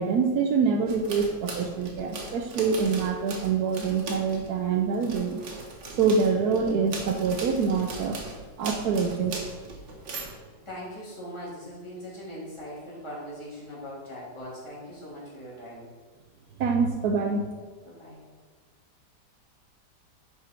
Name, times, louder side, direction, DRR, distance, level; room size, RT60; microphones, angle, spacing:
voice 1, 0.0-5.4 6.0-8.2 8.6-9.3 16.6-17.5, right 5 dB, 65° right, 3 dB, 1.1 m, -25 dB
sound 1, 0.9-4.6 4.9-10.4, right 3 dB, 85° right, 2.0 m, -39 dB
voice 2, 10.6-15.9 17.8-18.2, equal, 15° left, -8 dB, 2.9 m, -40 dB
10.5 x 5.1 x 4.5 m, 1.5 s
omnidirectional pair, 1.9 m